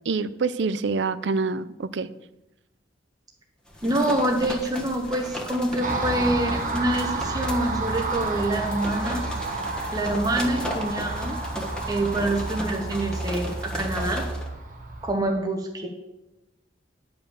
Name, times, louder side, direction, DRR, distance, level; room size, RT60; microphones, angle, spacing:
voice 1, 0.1-2.1, right 4 dB, 75° right, 15 dB, 0.5 m, -26 dB
sound 1, 3.7-14.5, equal, 5° left, 1.3 m, -36 dB
voice 2, 3.8-9.2 9.9-11.4 11.9-14.3 15.0-15.9, right 1 dB, 20° right, 1 dB, 1.0 m, -26 dB
Car passing by, 5.8-15.2, right 2 dB, 45° right, 1.0 m, -30 dB
10.5 x 5.1 x 7.1 m, 0.96 s
head